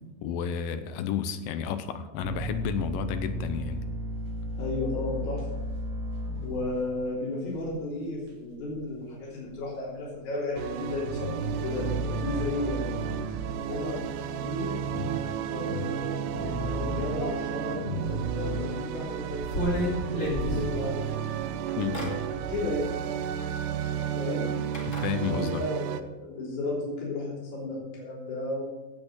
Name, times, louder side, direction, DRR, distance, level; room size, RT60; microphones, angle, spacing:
voice 1, 0.2-3.9 21.8-22.1 24.9-25.6, left 8 dB, 85° left, 11 dB, 2.4 m, -31 dB
sound 1, 2.2-8.9 9.1-10.1 10.5-13.7 14.0-18.6, equal, 55° right, 3.0 m, -35 dB
voice 2, 4.6-5.5 6.4-12.9 13.7-14.8 15.5-19.8 20.1-21.1 21.8-22.9 24.2-24.5 25.1-28.6, left 2 dB, 55° left, -6 dB, 4.7 m, -34 dB
sound 2, 10.6-26.0, right 9 dB, 75° right, 2.0 m, -33 dB
sound 3, 19.4-21.2 21.7-22.1 23.4-23.5 24.7-25.1, equal, 20° left, 2.9 m, -30 dB
17.0 x 6.2 x 6.4 m, 1.1 s
omnidirectional pair, 4.1 m